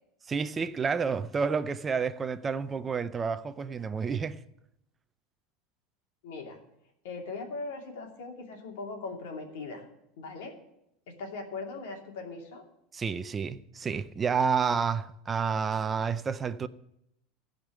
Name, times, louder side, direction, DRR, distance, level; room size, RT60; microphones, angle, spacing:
voice 1, 0.3-4.4 12.9-16.7, right 6 dB, 15° right, 0.4 m, -30 dB
voice 2, 6.2-6.6 7.0-9.9 10.2-10.6 11.1-12.6, left 3 dB, 75° left, 2.8 m, -39 dB
15.0 x 5.2 x 9.2 m
supercardioid pair, 165°, 0 cm